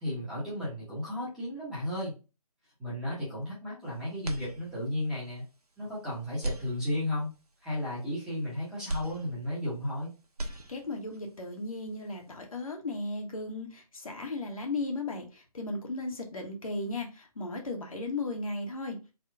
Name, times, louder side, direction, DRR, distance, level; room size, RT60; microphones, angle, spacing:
voice 1, 0.0-2.1 2.8-5.4 5.8-7.3 7.6-10.1, left 1 dB, 5° right, -9 dB, 0.9 m, -34 dB
sound 1, 4.2-5.1 5.6-5.7 6.3-7.4 8.9-10.0 10.2-11.2, right 1 dB, 70° right, 0.8 m, -38 dB
voice 2, 10.7-19.0, left 2 dB, 60° left, 2 dB, 1.0 m, -36 dB
3.6 x 2.3 x 3.4 m, 0.30 s
figure-of-eight pair, 150°, 20 cm